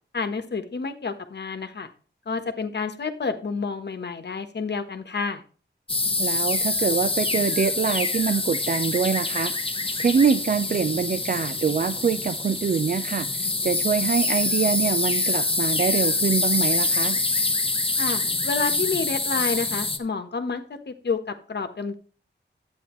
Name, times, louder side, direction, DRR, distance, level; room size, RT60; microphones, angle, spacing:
voice 1, 0.1-1.9 2.3-5.4 18.0-21.2 21.5-21.9, left 4 dB, 60° left, 8 dB, 1.3 m, -29 dB
sound 1, 5.9-20.0, left 3 dB, 30° left, 1.0 m, -25 dB
voice 2, 6.2-9.5 10.0-17.2, right 6 dB, 45° right, 10 dB, 0.5 m, -24 dB
11.0 x 9.0 x 3.1 m, 0.38 s
wide cardioid pair, 95°, 19 cm